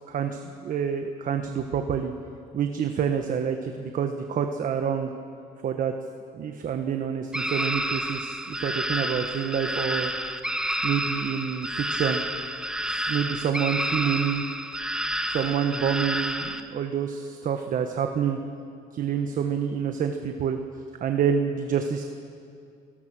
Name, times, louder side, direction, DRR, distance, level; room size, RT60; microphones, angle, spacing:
voice 1, 0.1-2.1 2.5-5.1 5.6-5.9 6.3-10.1 10.8-12.2 12.9-14.4 15.3-18.4 18.9-20.6 21.0-22.0, right 7 dB, 50° right, 6 dB, 1.3 m, -27 dB
sound 1, 7.3-16.6, right 1 dB, 5° right, 1.2 m, -30 dB
28.5 x 18.0 x 6.3 m, 2.5 s
cardioid pair, 110°, 17 cm